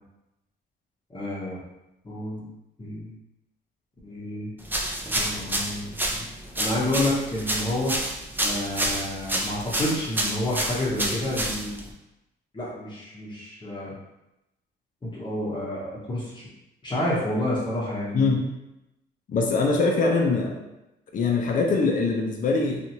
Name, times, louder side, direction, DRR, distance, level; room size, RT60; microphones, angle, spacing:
voice 1, 1.1-1.6 2.0-2.4 2.8-3.1 4.0-4.5 5.1-6.2 6.6-8.0 8.4-11.8 12.5-13.9 15.0-16.5 16.8-18.4, left 1 dB, 20° left, -6 dB, 0.8 m, -29 dB
sound 1, 4.7-11.9, right 1 dB, 10° right, 0.4 m, -29 dB
voice 2, 19.3-20.5 21.1-22.8, left 3 dB, 40° left, 1 dB, 0.5 m, -22 dB
2.9 x 2.4 x 2.7 m, 0.93 s
cardioid pair, 90°, 20 cm